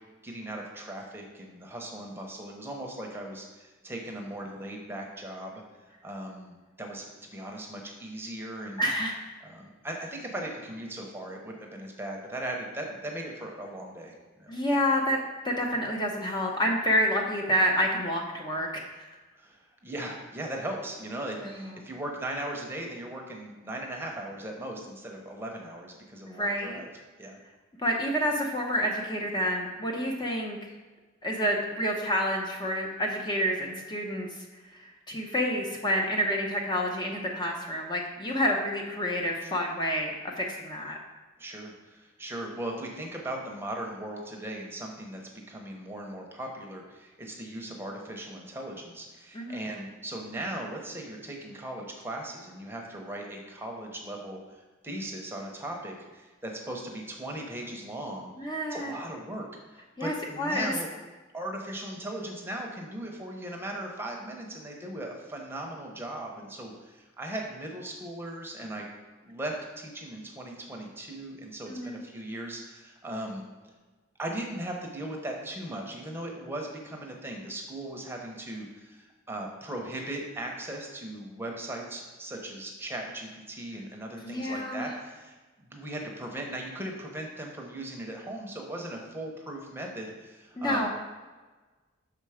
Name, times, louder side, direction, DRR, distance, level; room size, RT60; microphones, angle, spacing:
voice 1, 0.2-5.6 6.0-8.8 9.4-14.5 19.4-26.9 27.2-27.4 41.4-60.9 61.3-68.9 69.2-73.4 74.2-90.9, right 1 dB, 10° right, 0 dB, 0.8 m, -38 dB
voice 2, 8.8-9.1 14.5-15.2 15.4-19.1 21.4-21.7 26.3-26.8 27.8-30.6 31.2-34.3 34.7-41.0 49.3-49.6 58.4-58.9 60.0-60.7 71.7-72.0 84.2-84.9 90.6-90.9, equal, 20° left, 0 dB, 0.7 m, -28 dB
6.3 x 4.5 x 4.9 m, 1.3 s
head